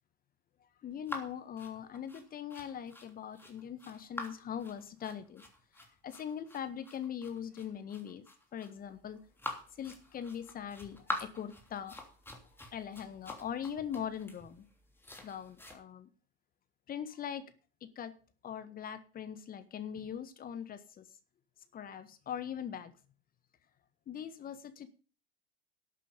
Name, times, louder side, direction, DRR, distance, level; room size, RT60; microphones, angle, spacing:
voice 1, 0.8-5.4 5.8-8.2 8.5-9.2 9.8-12.0 12.7-14.7 15.2-16.1 16.9-17.4 17.8-18.1 18.4-21.1 21.7-22.9 24.1-24.9, left 8 dB, 30° left, 11 dB, 1.6 m, -41 dB
sound 1, 1.1-15.8, left 2 dB, 5° left, 3.2 m, -45 dB
12.5 x 8.4 x 5.3 m, 0.37 s
hypercardioid pair, 90°, 29 cm